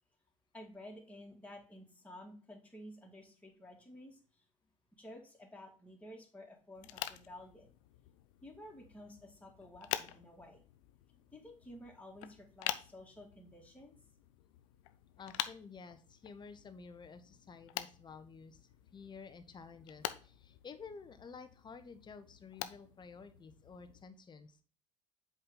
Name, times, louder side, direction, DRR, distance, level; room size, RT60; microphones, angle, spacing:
voice 1, 0.5-4.2 5.0-7.7 8.4-10.6 11.3-14.0, left 1 dB, 10° left, 0 dB, 2.2 m, -52 dB
sound 1, 6.7-24.0, left 14 dB, 70° left, 0.5 m, -47 dB
voice 2, 15.2-24.6, left 5 dB, 25° left, 9 dB, 0.9 m, -52 dB
7.7 x 3.9 x 3.9 m, 0.38 s
figure-of-eight pair, 60°, 17 cm